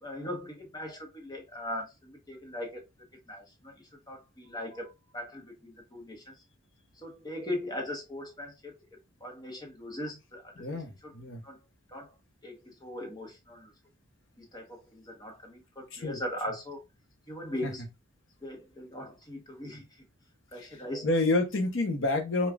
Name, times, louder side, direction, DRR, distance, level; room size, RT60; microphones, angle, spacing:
voice 1, 0.0-2.9 3.3-3.7 4.1-6.4 7.0-8.7 9.2-10.6 11.0-11.1 11.4-11.6 11.9-12.1 12.4-13.7 14.4-16.8 17.3-17.8 18.4-19.8 20.5-21.1, left 1 dB, 20° left, 1.0 m, -39 dB
voice 2, 10.6-11.4 15.9-16.2 17.6-17.7 20.6-22.5, left 2 dB, 60° left, 0.9 m, -29 dB
5.0 x 2.3 x 2.3 m
head